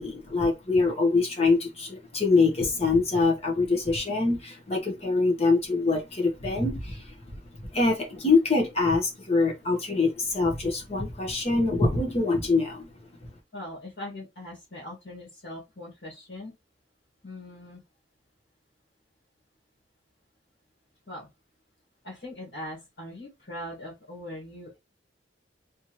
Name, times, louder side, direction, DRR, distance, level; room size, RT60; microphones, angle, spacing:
voice 1, 0.0-7.4 7.7-12.9 13.2-13.3, left 3 dB, 35° left, 1.1 m, -24 dB
voice 2, 13.5-16.5 17.2-17.8 21.1-21.3 22.0-24.8, left 1 dB, 70° left, 1.9 m, -41 dB
3.5 x 3.0 x 3.0 m
head